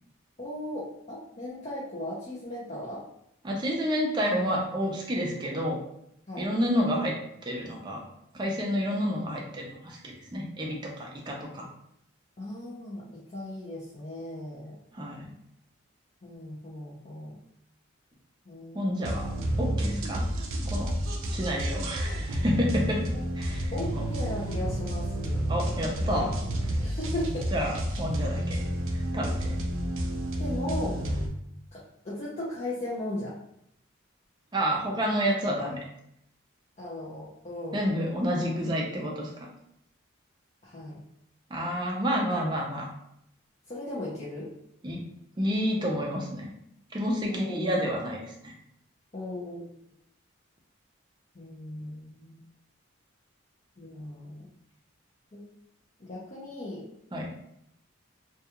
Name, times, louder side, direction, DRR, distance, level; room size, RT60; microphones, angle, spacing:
voice 1, 0.4-3.0 6.3-6.5 12.4-14.8 16.2-17.4 18.5-19.2 19.7-20.3 21.7-21.8 23.7-25.5 26.8-27.5 30.4-31.0 31.7-33.3 36.8-37.8 40.6-41.0 43.7-44.5 47.3-47.9 49.1-49.7 51.3-52.4 53.8-54.5 55.3-55.4 56.0-56.9, left 1 dB, 35° left, -8 dB, 0.5 m, -37 dB
voice 2, 3.4-5.8 6.4-7.1 7.4-8.0 8.3-11.7 14.9-15.3 18.7-19.3 19.6-20.3 20.6-20.9 21.3-23.0 23.4-24.0 25.5-26.4 27.5-28.7 28.9-29.6 34.5-35.8 37.7-39.5 41.5-42.9 44.8-45.0 45.4-46.5 46.9-48.5 57.1-57.3, equal, 20° right, -1 dB, 0.4 m, -29 dB
sound 1, 19.0-31.3, equal, 80° right, 0.4 m, -30 dB
2.3 x 2.3 x 2.8 m, 0.76 s
head